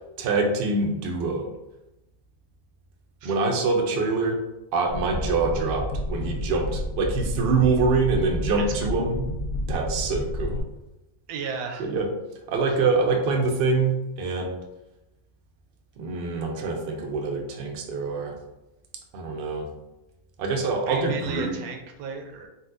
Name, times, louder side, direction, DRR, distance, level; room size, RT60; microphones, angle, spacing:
voice 1, 0.2-1.5 3.2-4.4 4.7-9.2 9.7-10.6 11.8-12.1 12.5-14.6 16.0-18.3 19.1-19.7 20.4-21.6, right 3 dB, 65° right, 2 dB, 0.6 m, -25 dB
sound 1, 4.9-10.6, left 1 dB, 70° left, 1.1 m, -30 dB
voice 2, 11.3-11.9 20.9-22.5, right 5 dB, 85° right, 2 dB, 1.0 m, -34 dB
3.9 x 2.3 x 2.5 m, 0.95 s
omnidirectional pair, 1.5 m